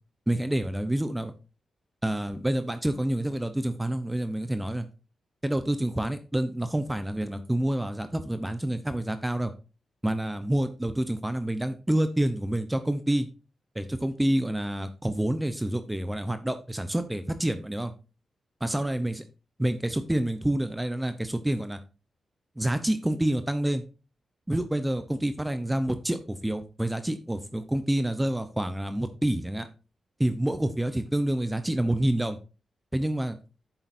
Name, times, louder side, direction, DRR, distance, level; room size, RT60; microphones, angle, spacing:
voice 1, 0.3-1.3 2.0-4.8 5.4-9.5 10.0-13.3 13.7-17.9 18.6-19.2 19.6-21.8 22.6-23.8 24.5-29.7 30.2-32.4 32.9-33.4, right 1 dB, 10° right, 10 dB, 0.8 m, -28 dB
10.0 x 7.9 x 2.6 m, 0.32 s
cardioid pair, 80°, 0 cm